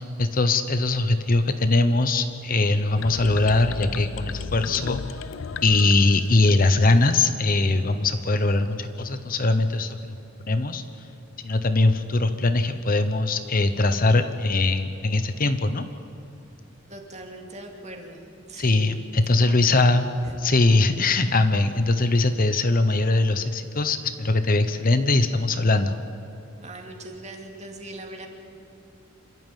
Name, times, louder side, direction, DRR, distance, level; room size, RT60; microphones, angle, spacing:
voice 1, 0.0-5.0 5.6-10.1 10.4-10.8 11.4-15.8 18.6-20.1 20.4-26.0, left 2 dB, 45° left, 9 dB, 0.9 m, -21 dB
sound 1, 3.0-6.9, left 5 dB, 70° left, 0.5 m, -35 dB
voice 2, 16.9-19.0 19.4-19.9 20.2-20.4 26.6-28.3, right 1 dB, 35° right, 2 dB, 2.6 m, -40 dB
27.5 x 12.5 x 9.3 m, 2.8 s
head